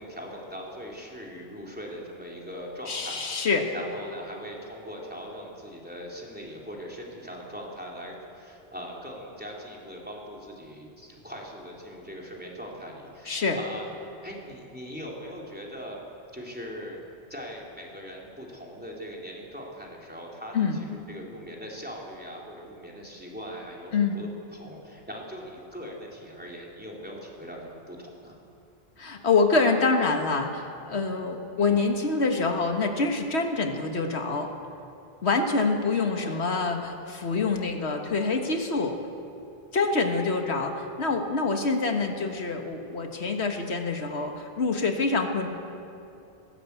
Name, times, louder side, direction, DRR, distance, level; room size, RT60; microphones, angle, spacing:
voice 1, 0.0-13.9 14.2-16.0 16.3-17.0 17.3-28.4 31.6-32.0 36.1-36.4 40.0-40.4, equal, 10° right, -3 dB, 3.5 m, -41 dB
voice 2, 2.9-3.7 13.3-13.6 20.5-20.8 23.9-24.2 29.0-34.5 35.2-39.0 39.7-45.5, left 4 dB, 85° left, 4 dB, 1.8 m, -26 dB
20.5 x 16.5 x 8.3 m, 2.7 s
omnidirectional pair, 1.1 m